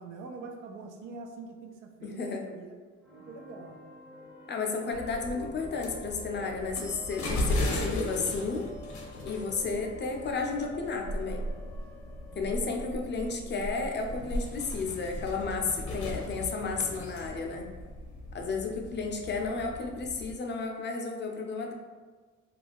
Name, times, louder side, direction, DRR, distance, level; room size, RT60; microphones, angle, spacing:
voice 1, 0.0-2.8 3.2-3.8 12.3-12.7 18.4-18.8, right 3 dB, 85° right, 4 dB, 0.5 m, -45 dB
voice 2, 2.0-2.4 4.5-8.7 9.2-11.4 12.4-17.7 18.3-21.7, left 4 dB, 35° left, 2 dB, 0.4 m, -33 dB
sound 1, 3.0-14.7, equal, 5° right, 0.6 m, -49 dB
sound 2, 4.9-20.3, left 1 dB, 70° left, 0.7 m, -37 dB
2.4 x 2.2 x 3.4 m, 1.5 s
cardioid pair, 90°, 30 cm